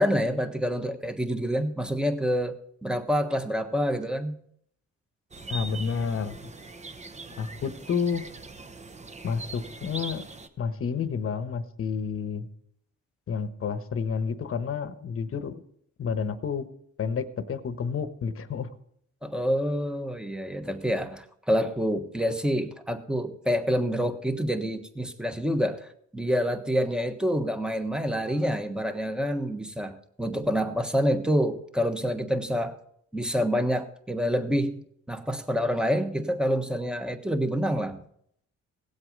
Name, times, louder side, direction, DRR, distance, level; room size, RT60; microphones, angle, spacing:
voice 1, 0.0-4.3 19.2-32.8 33.1-38.0, equal, 5° right, 7 dB, 1.3 m, -27 dB
sound 1, 5.3-10.5, right 3 dB, 25° right, 1.0 m, -41 dB
voice 2, 5.5-6.5 7.4-8.2 9.2-10.2 10.6-12.5 13.3-15.5 16.0-16.6 17.0-18.7, left 6 dB, 50° left, 12 dB, 1.1 m, -30 dB
17.0 x 8.0 x 5.3 m, 0.70 s
cardioid pair, 90°, 30 cm